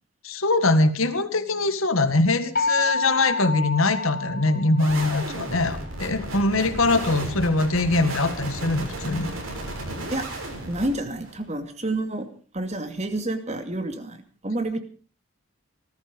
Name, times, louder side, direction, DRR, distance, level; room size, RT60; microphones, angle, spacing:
voice 1, 0.2-9.3, left 2 dB, 80° left, 10 dB, 1.9 m, -22 dB
sound 1, 2.6-5.3, left 3 dB, 45° left, 2.3 m, -28 dB
sound 2, 4.8-11.4, right 1 dB, 75° right, 6.6 m, -34 dB
voice 2, 10.7-12.3 12.5-14.8, right 2 dB, 30° right, 7 dB, 2.4 m, -29 dB
19.5 x 14.0 x 5.2 m, 0.41 s
head